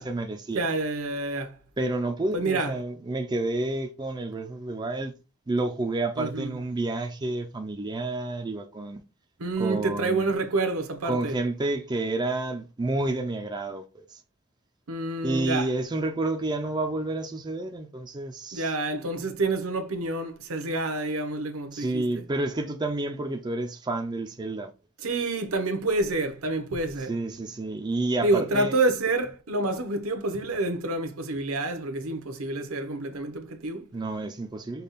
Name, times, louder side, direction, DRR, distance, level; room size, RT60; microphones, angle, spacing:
voice 1, 0.0-0.6 1.8-5.1 5.5-9.0 9.6-10.3 11.1-14.2 15.2-18.7 21.7-24.7 27.1-28.7 33.9-34.8, right 2 dB, 20° right, 0.4 m, -30 dB
voice 2, 0.5-1.5 2.3-2.7 6.2-6.5 9.4-11.3 14.9-15.7 18.5-22.2 25.0-27.1 28.2-33.9, right 2 dB, 70° right, 0.8 m, -28 dB
5.4 x 2.3 x 4.0 m
head